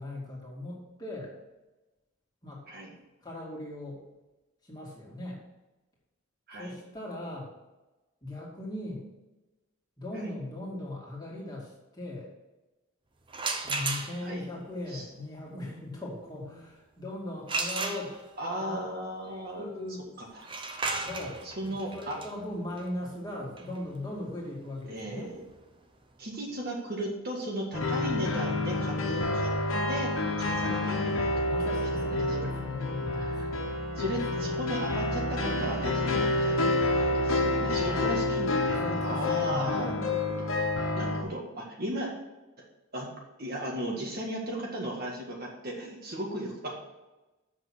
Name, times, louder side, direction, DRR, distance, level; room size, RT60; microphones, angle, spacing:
voice 1, 0.0-1.3 2.4-2.6 3.2-4.0 4.6-5.4 6.5-7.5 8.2-9.1 10.0-12.3 13.6-18.1 18.6-18.8 19.3-20.1 21.0-25.3 31.4-33.7 34.3-34.6 37.8-38.1 38.8-39.9, left 1 dB, 20° left, -4 dB, 2.3 m, -39 dB
sound 1, 13.3-14.5 17.5-18.5 20.4-26.0, right 3 dB, 25° right, 0.7 m, -35 dB
voice 2, 15.5-15.9 16.5-16.6 18.4-19.7 20.2-20.4 21.4-22.2 24.9-25.4 26.2-29.5 29.9-30.1 30.4-31.3 31.6-31.7 31.9-32.4 33.1-33.6 34.0-36.6 37.0-40.1 40.4-42.1 42.9-43.1 43.4-46.7, right 1 dB, 45° right, -1 dB, 1.8 m, -36 dB
sound 2, 27.7-41.2, left 2 dB, 80° left, 1.3 m, -28 dB
7.7 x 6.1 x 6.1 m, 1.1 s
head